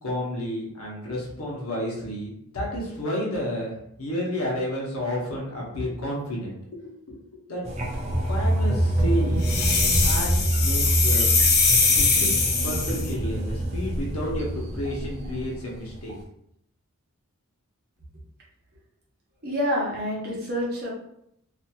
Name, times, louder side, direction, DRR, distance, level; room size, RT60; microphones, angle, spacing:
voice 1, 0.0-3.7 4.0-6.8 7.1-7.2 7.5-7.7 8.3-9.5 10.0-11.6 12.0-16.2, equal, 75° left, -3 dB, 0.9 m, -31 dB
sound 1, 7.7-15.5 15.9-16.1, right 1 dB, 30° right, 0.4 m, -26 dB
sound 2, 7.9-8.1 9.0-9.1 10.0-10.5 10.8-11.0 11.4-11.5 11.9-12.1, equal, 85° right, 0.8 m, -33 dB
sound 3, 9.4-13.1, left 4 dB, 45° left, 0.5 m, -22 dB
voice 2, 19.4-20.9, equal, 45° right, -5 dB, 0.9 m, -27 dB
2.8 x 2.6 x 2.2 m, 0.75 s
head